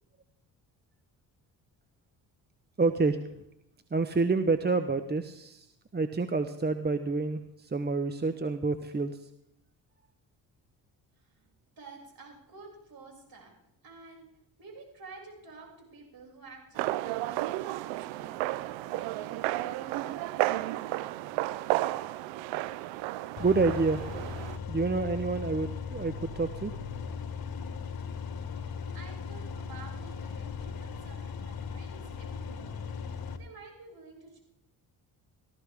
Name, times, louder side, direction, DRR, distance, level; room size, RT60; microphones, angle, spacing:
voice 1, 2.8-3.2 3.9-5.7 5.9-9.3 23.4-24.0 24.7-26.8, right 3 dB, 20° right, 10 dB, 1.0 m, -28 dB
voice 2, 11.7-13.5 13.8-14.3 14.6-20.5 28.9-32.8 33.0-34.4, right 3 dB, 50° right, 0 dB, 6.6 m, -51 dB
sound 1, 16.8-24.6, right 16 dB, 85° right, 0.7 m, -32 dB
sound 2, 23.4-33.4, left 5 dB, 50° left, 1.7 m, -38 dB
18.0 x 14.0 x 3.6 m, 0.81 s
supercardioid pair, 55°, 45 cm